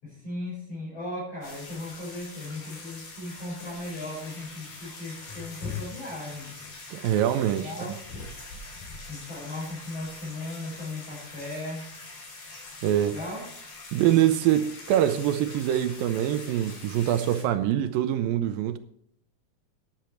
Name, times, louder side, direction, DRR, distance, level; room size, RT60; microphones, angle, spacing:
voice 1, 0.0-6.5 7.4-8.0 9.1-11.9 13.0-13.4, left 1 dB, 40° left, 7.4 m, -37 dB
sound 1, 1.4-17.4, left 4 dB, 65° left, 5.2 m, -43 dB
voice 2, 6.9-7.7 12.8-13.2 13.9-18.8, right 11 dB, 80° right, 2.3 m, -24 dB
13.0 x 10.5 x 4.5 m
omnidirectional pair, 4.4 m